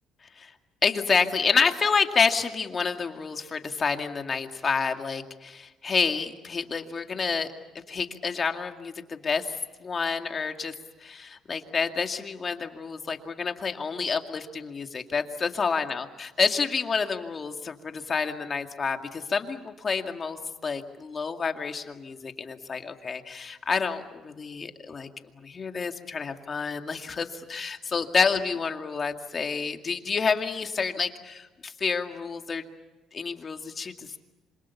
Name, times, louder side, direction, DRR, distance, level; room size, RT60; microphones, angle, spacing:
voice 1, 0.8-7.5 7.7-9.5 9.8-10.7 11.0-16.0 16.4-25.1 25.4-32.6 33.1-34.1, left 5 dB, 35° left, 5 dB, 2.1 m, -28 dB
26.5 x 26.5 x 7.2 m, 1.1 s
cardioid pair, 115°, 0 cm